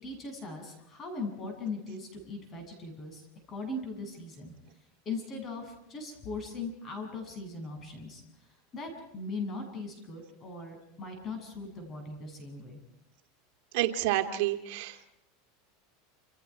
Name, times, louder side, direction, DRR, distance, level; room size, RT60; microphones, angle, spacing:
voice 1, 0.0-4.5 5.1-8.2 8.7-12.8, left 3 dB, 25° left, 4 dB, 7.3 m, -39 dB
voice 2, 13.7-15.1, right 14 dB, 60° right, 5 dB, 2.3 m, -29 dB
29.0 x 28.0 x 4.8 m, 0.81 s
supercardioid pair, 150°, 0 cm